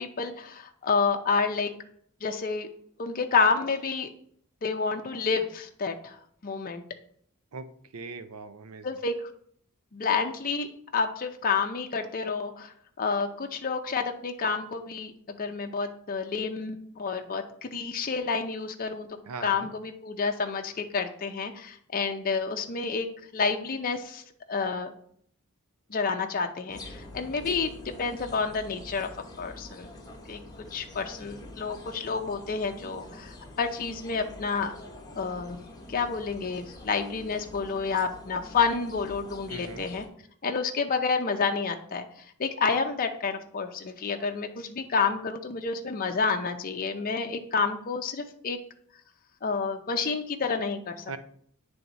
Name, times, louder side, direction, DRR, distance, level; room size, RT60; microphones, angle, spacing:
voice 1, 0.0-1.7 2.2-2.7 3.0-4.1 4.6-6.2 6.4-6.8 8.8-9.1 9.9-10.7 10.9-23.1 23.3-24.2 24.5-24.9 25.9-29.1 29.4-29.9 30.3-30.4 30.7-34.7 35.2-35.6 35.9-40.0 40.4-42.0 42.4-48.6 49.4-51.0, left 5 dB, 40° left, 4 dB, 0.5 m, -29 dB
voice 2, 7.9-8.9 19.2-19.7 39.5-39.9 51.1-51.2, right 4 dB, 75° right, 10 dB, 0.6 m, -40 dB
sound 1, 26.7-40.1, left 1 dB, 15° left, 0.9 m, -46 dB
9.3 x 3.5 x 4.0 m, 0.64 s
head